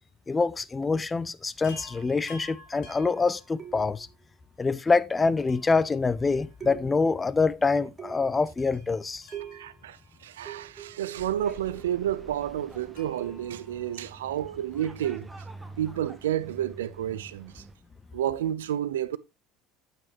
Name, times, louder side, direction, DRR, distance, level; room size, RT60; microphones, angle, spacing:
voice 1, 0.3-4.1 4.6-9.3, left 4 dB, 20° left, 0.6 m, -25 dB
Chime, 1.6-4.1 5.5-7.0 7.3-7.4 8.6-11.3 12.9-14.6 16.1-16.2 16.4-16.5, left 3 dB, 60° left, 3.0 m, -52 dB
sound 1, 3.6-4.1 5.4-5.7 6.6-7.2 8.0-8.5 9.3-9.8 10.4-12.1 13.2-13.6 15.0-15.3, right 10 dB, 30° right, 1.6 m, -44 dB
voice 2, 9.5-15.3 15.8-17.6 18.1-19.2, right 11 dB, 80° right, 0.6 m, -30 dB
sound 2, 11.2-17.7, right 2 dB, 10° right, 1.8 m, -47 dB
8.9 x 7.8 x 3.0 m
hypercardioid pair, 70°, 0 cm